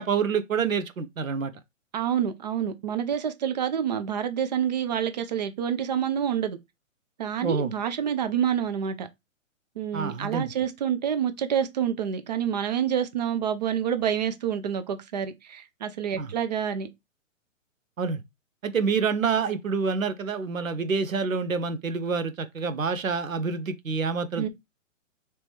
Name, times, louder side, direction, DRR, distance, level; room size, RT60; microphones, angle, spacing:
voice 1, 0.0-1.5 7.4-7.7 9.9-10.5 16.2-16.3 18.0-18.2 18.6-24.5, right 5 dB, 90° right, 0.7 m, -27 dB
voice 2, 1.9-6.6 7.2-9.1 9.8-16.9 24.4-24.5, right 8 dB, 35° right, 0.4 m, -27 dB
3.0 x 2.9 x 3.4 m
figure-of-eight pair, 125°, 39 cm